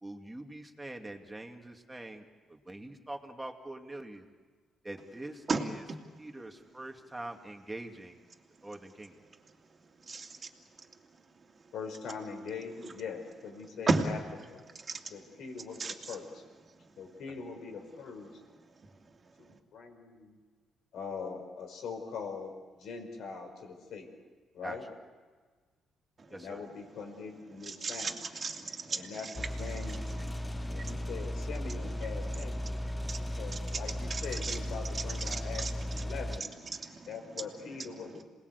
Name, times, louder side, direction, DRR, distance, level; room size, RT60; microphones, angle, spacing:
voice 1, 0.0-4.3 4.8-5.8 6.2-8.2 8.6-9.2 24.6-24.8 26.3-26.6, right 1 dB, 10° right, 3 dB, 2.6 m, -44 dB
voice 2, 10.1-10.4 13.9-14.0 14.9-15.0 15.8-15.9 27.7-28.1 28.4-29.1 30.4-31.0 33.0-33.4 34.1-34.6 35.3-35.7 36.7-37.1, right 4 dB, 35° right, 3 dB, 2.7 m, -33 dB
voice 3, 11.7-14.6 15.1-16.4 17.0-18.4 19.4-20.4 20.9-24.1 24.5-24.9 26.3-28.3 28.9-30.0 30.7-32.8 33.2-36.5 37.1-38.2, left 5 dB, 75° left, 4 dB, 5.1 m, -42 dB
sound 1, 29.4-36.4, equal, 20° left, 0.9 m, -36 dB
27.5 x 20.0 x 8.3 m, 1.5 s
cardioid pair, 90°, 0 cm